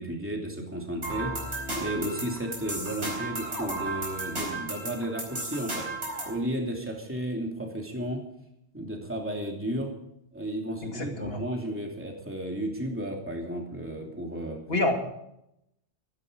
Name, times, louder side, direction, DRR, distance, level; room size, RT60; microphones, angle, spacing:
voice 1, 0.0-5.9 6.3-8.2 8.7-9.9 10.3-14.6, right 1 dB, 10° right, 0 dB, 2.9 m, -33 dB
sound 1, 1.0-6.4, right 2 dB, 75° right, 5.1 m, -34 dB
voice 2, 10.9-11.5 14.7-14.9, left 2 dB, 60° left, 3 dB, 2.7 m, -27 dB
15.5 x 15.0 x 5.1 m, 0.80 s
omnidirectional pair, 1.2 m